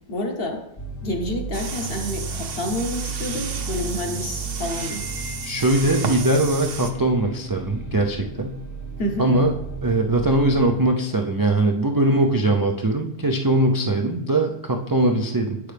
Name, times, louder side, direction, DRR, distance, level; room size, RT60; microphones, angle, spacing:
voice 1, 0.1-0.6 1.0-5.1 9.0-9.3, left 1 dB, 60° left, 3 dB, 1.3 m, -28 dB
sound 1, 0.8-10.8, right 2 dB, 20° left, 0.6 m, -34 dB
sound 2, 1.5-6.9, right 5 dB, 60° right, 0.9 m, -32 dB
voice 2, 5.4-8.5 9.2-9.5 9.8-15.6, right 2 dB, 35° right, 2 dB, 0.3 m, -21 dB
8.3 x 6.1 x 3.3 m, 0.81 s
omnidirectional pair, 1.2 m